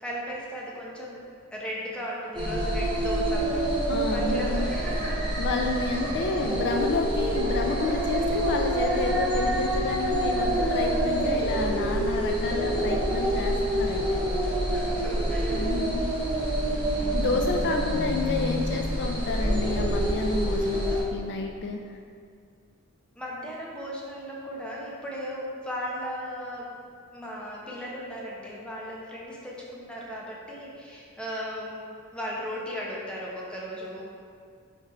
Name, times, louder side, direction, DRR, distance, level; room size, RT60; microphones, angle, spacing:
voice 1, 0.0-1.2 1.5-5.5 8.1-8.5 14.7-15.7 23.2-26.7 27.1-31.8 32.1-34.1, equal, 5° left, -5 dB, 1.0 m, -36 dB
sound 1, 2.3-21.0, right 1 dB, 20° right, 1.6 m, -27 dB
voice 2, 3.9-4.8 5.4-14.2 15.5-16.0 17.1-21.8, left 3 dB, 55° left, 3 dB, 0.4 m, -30 dB
5.8 x 4.5 x 4.4 m, 2.2 s
head